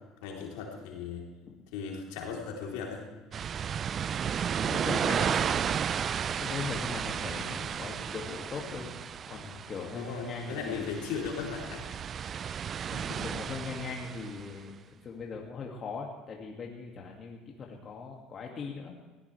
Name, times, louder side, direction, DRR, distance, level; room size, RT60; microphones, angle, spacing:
voice 1, 0.2-1.3 1.7-3.0 4.6-5.6 9.9-11.8, left 6 dB, 75° left, -1 dB, 3.5 m, -37 dB
sound 1, 3.3-14.5, right 8 dB, 40° right, 0.4 m, -33 dB
voice 2, 4.6-5.4 5.8-6.1 6.4-10.9 12.9-19.0, left 5 dB, 40° left, 0 dB, 2.2 m, -40 dB
19.5 x 16.0 x 3.4 m, 1.3 s
hypercardioid pair, 75°, 0 cm